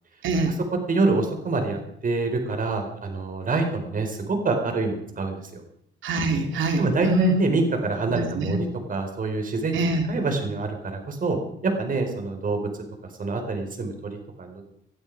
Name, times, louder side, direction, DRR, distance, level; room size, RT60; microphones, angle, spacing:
voice 1, 0.2-0.6 6.0-7.4 8.1-8.6 9.7-10.1, right 2 dB, 75° right, 5 dB, 3.2 m, -24 dB
voice 2, 0.9-5.6 6.8-9.8 10.1-11.4 11.6-12.6 13.2-14.6, right 3 dB, 45° right, 4 dB, 4.6 m, -26 dB
20.0 x 12.5 x 4.9 m, 0.72 s
cardioid pair, 90°, 20 cm